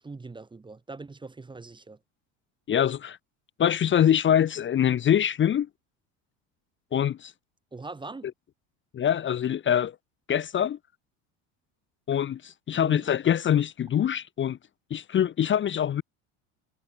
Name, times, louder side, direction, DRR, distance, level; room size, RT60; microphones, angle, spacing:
voice 1, 0.0-2.0 7.7-8.3 12.7-13.0, right 3 dB, 15° right, 1.0 m, -41 dB
voice 2, 2.7-3.2 3.6-5.7 6.9-7.3 8.9-10.0 10.3-10.8 12.1-14.6 14.9-16.0, left 9 dB, 30° left, 0.8 m, -24 dB
supercardioid pair, 95°, 37 cm